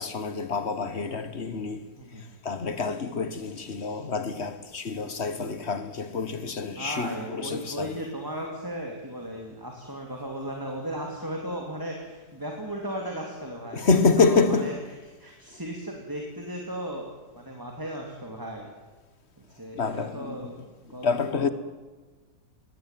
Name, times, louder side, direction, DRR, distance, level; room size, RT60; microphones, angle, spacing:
voice 1, 0.0-1.8 2.4-7.9 13.7-14.7 19.8-20.5 21.0-21.5, left 4 dB, 40° left, 1.5 m, -27 dB
voice 2, 2.0-2.4 6.8-14.7 15.2-17.1 17.3-18.7 19.4-20.5 20.8-21.5, right 1 dB, 10° right, 2.9 m, -36 dB
21.0 x 17.0 x 9.2 m
omnidirectional pair, 2.0 m